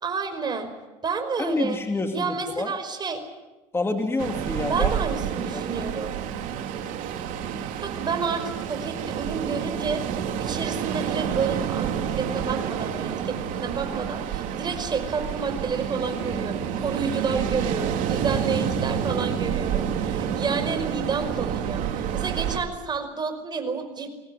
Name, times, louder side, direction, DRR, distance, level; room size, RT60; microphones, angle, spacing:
voice 1, 0.0-0.7 1.0-1.8 2.1-3.2 4.6-6.2 7.8-10.0 10.4-24.1, right 5 dB, 30° right, 7 dB, 5.4 m, -30 dB
voice 2, 1.4-2.7 3.7-4.9 5.5-5.9, left 2 dB, 15° left, 5 dB, 2.6 m, -28 dB
Ocean, 4.2-22.6, right 8 dB, 65° right, 2.8 m, -29 dB
24.0 x 18.0 x 10.0 m, 1.1 s
supercardioid pair, 95°, 14 cm